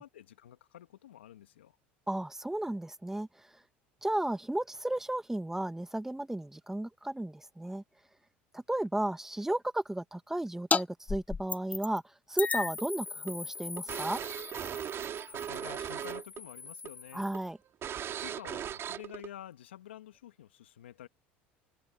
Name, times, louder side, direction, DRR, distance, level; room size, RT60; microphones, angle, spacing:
voice 1, 0.0-1.8 14.9-17.3 18.1-21.1, left 12 dB, 85° left, 2.5 m, -49 dB
voice 2, 2.1-3.5 4.0-7.8 8.5-14.2 17.1-17.6, right 1 dB, 5° right, 2.0 m, -34 dB
sound 1, 10.7-10.8 11.1-12.0 12.4-17.5, left 5 dB, 25° left, 0.9 m, -36 dB
sound 2, 12.8-16.4 16.7-16.9 17.3-17.4 17.8-19.3, right 9 dB, 45° right, 3.4 m, -38 dB
hypercardioid pair, 75°, 6 cm